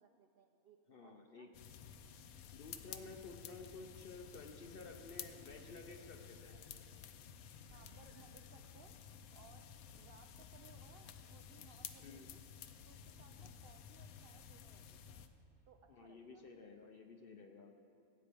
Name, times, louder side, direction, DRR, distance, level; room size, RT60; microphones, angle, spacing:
voice 1, 0.0-1.5 6.5-6.7 7.7-12.4 12.9-15.3 15.7-16.5, right 6 dB, 70° right, 4 dB, 0.5 m, -65 dB
voice 2, 0.9-1.5 2.5-6.5 12.0-12.3 15.9-17.7, left 4 dB, 55° left, 4 dB, 0.7 m, -53 dB
sound 1, 1.5-15.3, left 8 dB, 80° left, 1.0 m, -53 dB
Laughter, 1.9-2.4 4.7-5.6 6.0-6.2 7.6-8.8 10.4-11.4 12.5-13.7, equal, 30° right, 0.9 m, -72 dB
17.0 x 8.8 x 3.4 m, 3.0 s
omnidirectional pair, 1.5 m